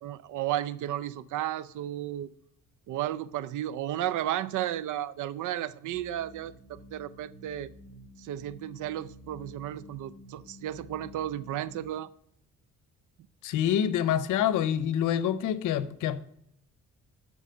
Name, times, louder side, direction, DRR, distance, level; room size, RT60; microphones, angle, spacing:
voice 1, 0.0-2.3 2.9-7.7 8.2-12.1, right 12 dB, 80° right, 0.6 m, -33 dB
sound 1, 5.9-11.9, left 1 dB, 5° left, 1.6 m, -51 dB
voice 2, 13.4-16.2, left 10 dB, 85° left, 0.7 m, -26 dB
12.0 x 4.1 x 6.7 m
cardioid pair, 90°, 30 cm